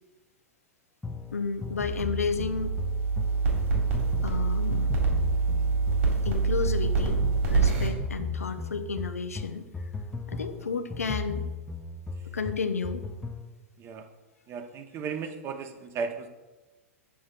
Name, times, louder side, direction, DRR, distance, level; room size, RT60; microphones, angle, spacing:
sound 1, 1.0-13.5, left 3 dB, 5° left, 0.4 m, -37 dB
voice 1, 1.3-2.7 4.2-4.9 6.2-7.2 7.5-9.6 10.3-11.4 12.3-13.0, left 5 dB, 85° left, 9 dB, 0.5 m, -32 dB
sound 2, 1.7-7.9, right 4 dB, 60° right, 2.1 m, -26 dB
voice 2, 13.8-14.1 14.5-16.3, right 5 dB, 35° right, 7 dB, 0.7 m, -35 dB
7.1 x 6.2 x 2.4 m, 1.1 s
hypercardioid pair, 100°, 8 cm